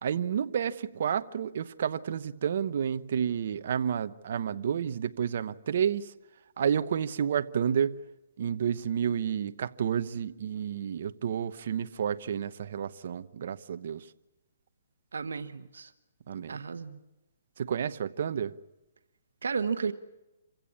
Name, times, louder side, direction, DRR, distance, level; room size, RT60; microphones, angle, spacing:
voice 1, 0.0-6.1 6.6-8.0 8.4-14.1 16.3-16.6 17.6-18.5, right 8 dB, 55° right, 0.9 m, -30 dB
voice 2, 15.1-15.9 16.5-17.0 19.4-19.9, right 5 dB, 90° right, 1.1 m, -33 dB
27.5 x 16.0 x 8.6 m
hypercardioid pair, 160°, 0 cm